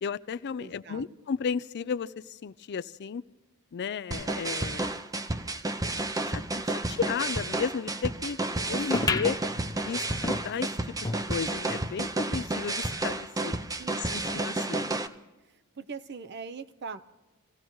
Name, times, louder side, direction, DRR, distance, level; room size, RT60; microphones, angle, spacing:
voice 1, 0.0-3.2 3.7-4.9 6.3-8.4 8.7-9.4 9.8-13.5 14.0-14.9, left 6 dB, 50° left, 16 dB, 0.4 m, -34 dB
voice 2, 0.6-1.1 8.7-9.1 13.4-14.4 15.4-17.1, right 5 dB, 50° right, 12 dB, 0.7 m, -43 dB
sound 1, 4.1-15.1, right 2 dB, 15° right, 0.6 m, -31 dB
sound 2, 8.9-11.9 12.3-12.4 12.6-12.7 13.5-13.6, left 3 dB, 15° left, 0.8 m, -33 dB
27.5 x 16.0 x 3.1 m, 1.2 s
head